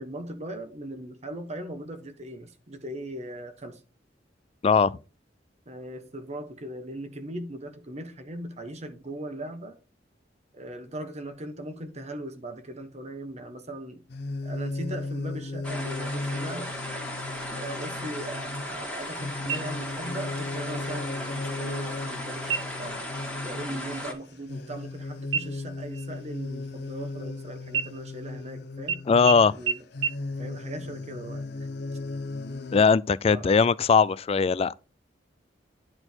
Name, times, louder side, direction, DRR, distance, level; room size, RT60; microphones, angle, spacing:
voice 1, 0.0-3.8 5.7-9.8 10.5-14.0 14.4-16.7 17.5-23.1 23.4-29.8 30.4-31.4 33.2-33.5, right 1 dB, 40° right, 1.2 m, -39 dB
voice 2, 4.6-5.0 29.1-29.5 32.7-34.7, left 5 dB, 35° left, 0.3 m, -20 dB
sound 1, 14.1-32.8, left 3 dB, 65° left, 0.7 m, -36 dB
sound 2, 15.6-24.1, left 1 dB, 5° left, 1.7 m, -36 dB
sound 3, 19.5-20.2 20.6-20.7 21.2-21.7 22.4-23.0 23.3-23.6 23.9-25.0 25.3-27.3 27.7-28.5 28.9-29.0 29.3-29.4 29.7-29.8 30.0-30.1, right 7 dB, 85° right, 0.6 m, -32 dB
10.5 x 4.4 x 4.5 m
head